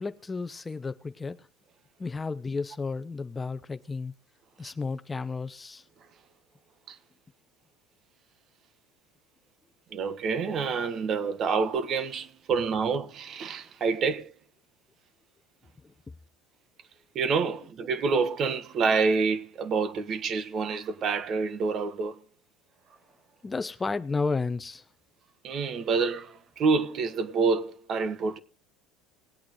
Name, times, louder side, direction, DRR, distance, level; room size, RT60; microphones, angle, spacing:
voice 1, 0.0-1.5 2.0-4.1 4.6-5.8 23.4-24.8, left 4 dB, 20° left, 0.7 m, -32 dB
voice 2, 9.9-14.3 17.1-22.2 25.4-28.4, right 4 dB, 45° right, 1.5 m, -27 dB
20.0 x 8.6 x 3.1 m
supercardioid pair, 100°, 0 cm